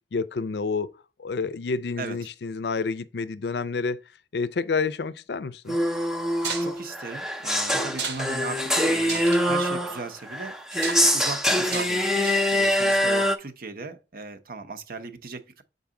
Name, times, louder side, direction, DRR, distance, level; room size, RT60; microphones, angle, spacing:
voice 1, 0.1-0.9 1.2-4.0 4.3-5.8, left 4 dB, 70° left, 0.5 m, -29 dB
sound 1, 5.7-13.4, equal, 5° right, 0.6 m, -24 dB
voice 2, 6.4-10.5 11.1-15.6, right 4 dB, 55° right, 0.8 m, -38 dB
sound 2, 6.4-6.7 7.9-8.2 8.6-8.7 9.0-9.4 10.7-11.0 11.7-11.9 12.2-12.6, right 5 dB, 75° right, 1.3 m, -32 dB
7.0 x 4.0 x 3.7 m
head